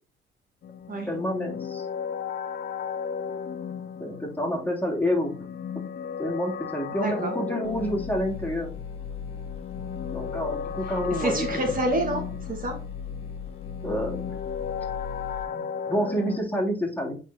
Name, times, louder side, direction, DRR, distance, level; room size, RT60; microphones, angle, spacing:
sound 1, 0.6-16.4, left 7 dB, 50° left, 0.5 m, -35 dB
voice 1, 1.1-1.9 4.0-5.5 6.2-8.7 10.1-11.7 13.8-14.2 15.5-17.2, equal, 10° left, -3 dB, 3.0 m, -28 dB
voice 2, 7.0-7.3 11.1-12.8, right 1 dB, 45° right, 1 dB, 1.8 m, -28 dB
sound 2, 7.6-15.4, left 7 dB, 30° left, 1.9 m, -38 dB
9.0 x 4.3 x 2.9 m, 0.36 s
cardioid pair, 90°, 20 cm